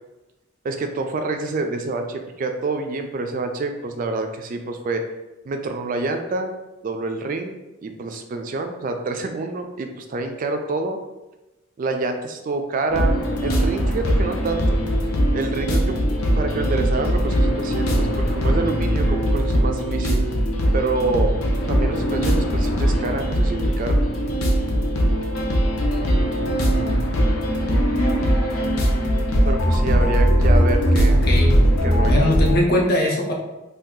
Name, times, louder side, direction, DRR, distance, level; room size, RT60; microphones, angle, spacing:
voice 1, 0.6-5.0 5.5-6.6 6.8-11.0 11.8-14.8 15.3-16.0 16.4-20.2 20.7-21.4 21.7-24.0 29.5-31.2 31.8-32.3, right 3 dB, 40° right, 5 dB, 0.3 m, -27 dB
sound 1, 12.9-32.6, equal, 85° left, 0.6 m, -20 dB
voice 2, 32.1-33.3, left 1 dB, 50° left, -1 dB, 0.6 m, -20 dB
2.7 x 2.3 x 3.6 m, 1.0 s
head